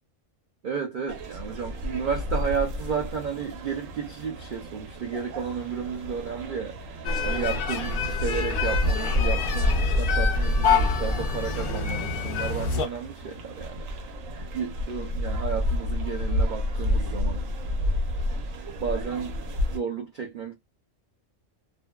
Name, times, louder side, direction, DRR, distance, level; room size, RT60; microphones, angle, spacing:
voice 1, 0.6-17.4 18.8-19.4 19.7-20.5, right 6 dB, 65° right, 0.5 m, -33 dB
sound 1, 1.1-19.8, left 1 dB, 80° right, 1.1 m, -29 dB
sound 2, 7.0-12.9, left 5 dB, 60° left, 0.6 m, -28 dB
2.6 x 2.1 x 2.2 m
omnidirectional pair, 1.3 m